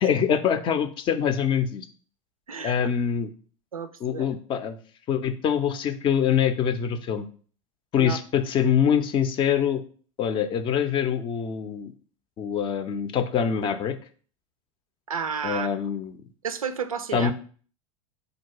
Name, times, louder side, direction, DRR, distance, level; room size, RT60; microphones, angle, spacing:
voice 1, 0.0-1.9 2.6-3.3 4.0-4.8 5.1-7.3 7.9-9.8 10.2-11.9 12.4-14.0 15.4-16.1 17.1-17.3, left 8 dB, 30° left, 9 dB, 0.4 m, -24 dB
voice 2, 3.7-4.3 8.0-8.2 15.1-15.7 16.4-17.3, right 6 dB, 80° right, 12 dB, 0.4 m, -31 dB
3.8 x 2.3 x 4.5 m, 0.42 s
figure-of-eight pair, 85°, 18 cm